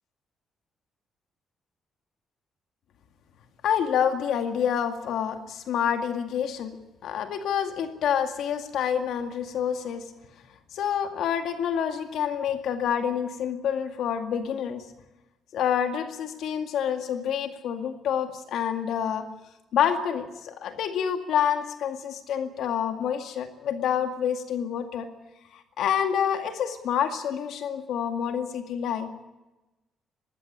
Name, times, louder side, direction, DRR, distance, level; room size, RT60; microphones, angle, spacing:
voice 1, 3.6-6.8 7.0-10.1 10.7-14.8 15.5-19.3 19.7-25.1 25.5-29.1, left 8 dB, 75° left, 6 dB, 2.1 m, -27 dB
19.5 x 16.0 x 10.0 m, 1.0 s
cardioid pair, 90°, 0 cm